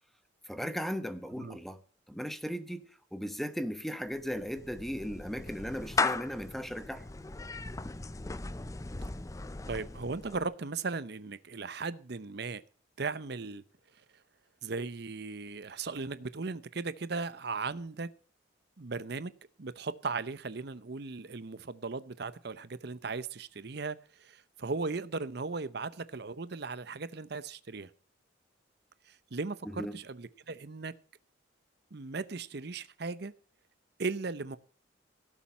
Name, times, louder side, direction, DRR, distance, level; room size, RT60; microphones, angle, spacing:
voice 1, 0.5-1.8 2.1-7.0 29.7-29.9, equal, ahead, 0.9 m, -37 dB
Clapping / Meow, 4.1-10.5, left 3 dB, 15° left, 0.5 m, -37 dB
voice 2, 9.7-12.6 13.0-13.6 14.6-18.1 18.8-19.3 19.6-27.9 29.1-30.9 31.9-33.3 34.0-34.6, right 4 dB, 55° right, 0.7 m, -37 dB
17.0 x 7.3 x 5.6 m
head